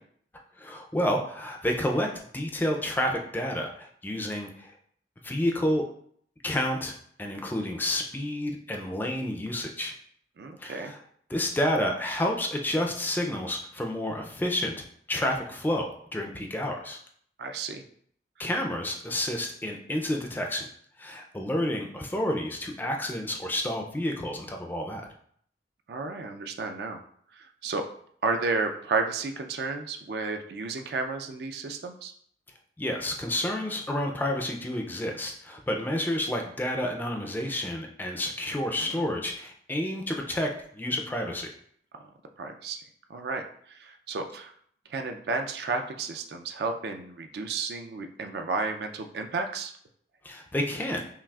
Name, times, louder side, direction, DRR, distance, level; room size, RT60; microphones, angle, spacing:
voice 1, 0.6-2.1 2.3-4.7 5.2-5.8 6.4-9.9 10.6-11.0 11.3-14.8 15.1-17.0 18.4-20.7 21.0-25.1 32.8-40.5 40.7-41.5 50.2-51.0, left 1 dB, 10° left, 2 dB, 0.3 m, -30 dB
voice 2, 10.4-10.9 17.4-17.8 25.9-27.0 27.6-27.8 28.2-32.1 38.8-39.2 42.4-42.8 43.1-44.5 44.9-49.7, right 4 dB, 65° right, 6 dB, 0.4 m, -32 dB
5.7 x 2.4 x 2.3 m, 0.63 s
head